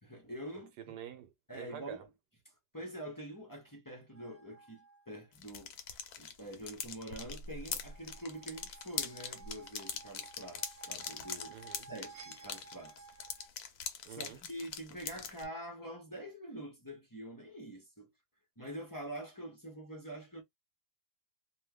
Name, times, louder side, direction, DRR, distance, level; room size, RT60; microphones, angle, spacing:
voice 1, 0.0-0.7 1.5-2.1 2.7-11.6 11.9-13.1 14.1-18.1 18.6-20.4, right 1 dB, 20° left, 0.5 m, -45 dB
voice 2, 0.8-2.0 11.5-11.9 14.0-14.4, right 10 dB, 85° right, 1.3 m, -47 dB
sound 1, 4.1-5.2 7.6-13.5, right 5 dB, 30° right, 0.9 m, -55 dB
sound 2, 5.3-15.4, left 7 dB, 70° left, 1.1 m, -42 dB
3.0 x 2.2 x 3.4 m
omnidirectional pair, 1.8 m